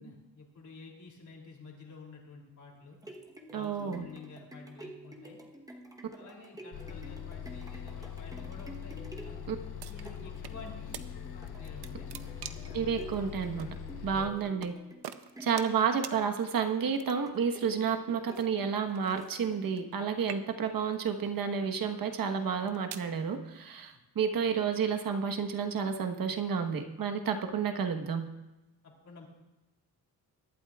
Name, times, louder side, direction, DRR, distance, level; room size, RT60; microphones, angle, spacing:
voice 1, 0.0-3.0 3.5-5.4 6.2-8.9 9.2-9.5 9.8-11.1 11.5-12.4 14.1-14.4 23.9-24.0 28.8-29.3, left 4 dB, 50° left, 0 dB, 3.1 m, -50 dB
sound 1, 2.8-19.9 20.4-20.5, right 1 dB, 10° right, 1.0 m, -50 dB
voice 2, 3.5-4.0 9.5-9.6 12.7-13.7 14.0-14.7 15.4-28.2, right 6 dB, 60° right, 6 dB, 1.3 m, -31 dB
Bus, 6.7-14.3, left 9 dB, 75° left, 1.0 m, -42 dB
sound 2, 9.8-10.6 10.9-11.1 11.5-12.8 13.6-13.7 14.6-14.8 15.0-16.2 16.9-17.4 18.3-19.9 20.2-20.8 21.5-21.7 22.4-23.1, right 10 dB, 80° right, 0.7 m, -44 dB
22.5 x 12.0 x 2.4 m, 1.1 s
wide cardioid pair, 175°, 38 cm